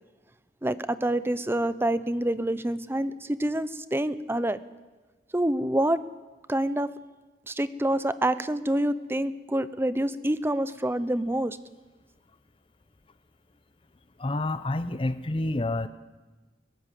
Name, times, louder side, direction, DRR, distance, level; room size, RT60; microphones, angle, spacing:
voice 1, 0.6-4.6 5.3-6.0 6.5-6.9 7.5-11.6, right 1 dB, 15° right, 14 dB, 0.7 m, -27 dB
voice 2, 14.2-15.9, left 2 dB, 30° left, 12 dB, 0.7 m, -28 dB
21.5 x 17.5 x 7.6 m, 1.3 s
head